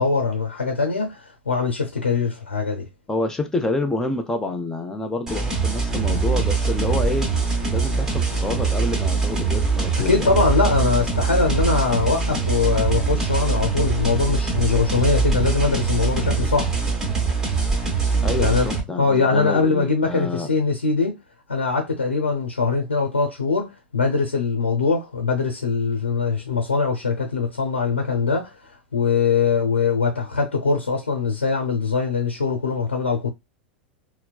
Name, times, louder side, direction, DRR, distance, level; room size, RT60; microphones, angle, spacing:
voice 1, 0.0-2.9 9.9-16.7 18.4-21.2 21.5-33.3, left 4 dB, 75° left, 0.8 m, -22 dB
voice 2, 3.1-7.3 7.7-10.3 18.2-20.5, left 2 dB, 10° left, 0.7 m, -27 dB
sound 1, 5.3-18.8, right 4 dB, 10° right, 1.2 m, -23 dB
4.4 x 2.1 x 2.3 m
figure-of-eight pair, 90°, 6 cm